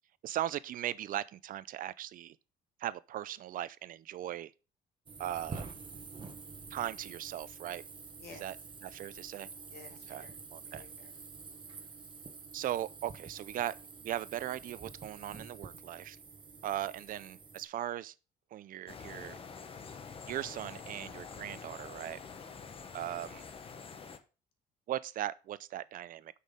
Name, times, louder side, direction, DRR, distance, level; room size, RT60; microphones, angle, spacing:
voice 1, 0.2-2.4 2.8-4.5 5.2-5.7 6.7-7.8 8.4-8.6 8.8-9.5 10.1-10.3 10.5-10.8 12.5-13.7 14.0-16.2 16.6-18.1 18.5-19.4 20.3-22.2 22.9-23.4 24.9-26.4, right 12 dB, 55° right, 0.5 m, -38 dB
sound 1, 5.1-17.6, right 4 dB, 30° right, 1.3 m, -48 dB
voice 2, 8.2-8.5 9.7-10.4 10.7-11.1 16.4-16.7 22.3-22.9, left 4 dB, 75° left, 2.0 m, -55 dB
sound 2, 18.9-24.2, left 5 dB, 35° left, 1.0 m, -47 dB
6.2 x 5.6 x 5.1 m
cardioid pair, 110°, 17 cm